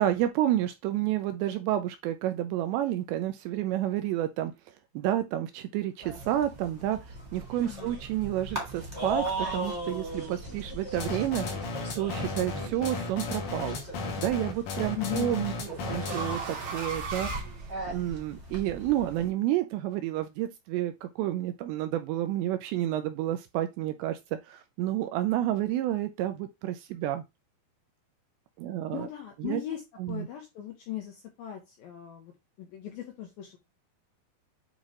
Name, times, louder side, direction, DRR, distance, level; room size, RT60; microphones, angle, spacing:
voice 1, 0.0-7.0 7.3-11.5 12.0-13.8 14.2-15.5 15.9-17.3 17.9-24.2 24.4-27.2 28.6-29.1 29.4-29.6 30.0-30.3, right 13 dB, 85° right, 2.5 m, -30 dB
sound 1, 6.0-19.3, right 2 dB, 15° right, 1.3 m, -39 dB
voice 2, 7.6-8.0 15.0-15.5 28.9-29.8 30.1-32.3 32.6-33.6, left 12 dB, 75° left, 2.2 m, -38 dB
sound 2, 11.0-16.5, left 4 dB, 60° left, 2.3 m, -34 dB
sound 3, 12.5-12.8 14.3-18.3, right 4 dB, 65° right, 1.7 m, -39 dB
9.0 x 3.1 x 3.6 m
omnidirectional pair, 5.4 m